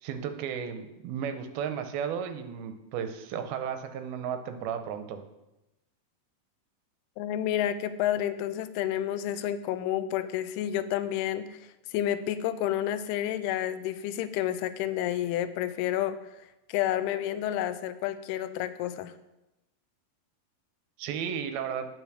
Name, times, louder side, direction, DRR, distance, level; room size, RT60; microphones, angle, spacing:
voice 1, 0.0-5.2 21.0-21.9, right 8 dB, 85° right, 7 dB, 2.6 m, -34 dB
voice 2, 7.2-11.6 11.9-16.2 16.7-19.1, left 11 dB, 90° left, 12 dB, 2.6 m, -30 dB
9.1 x 6.1 x 6.3 m, 0.96 s
omnidirectional pair, 4.4 m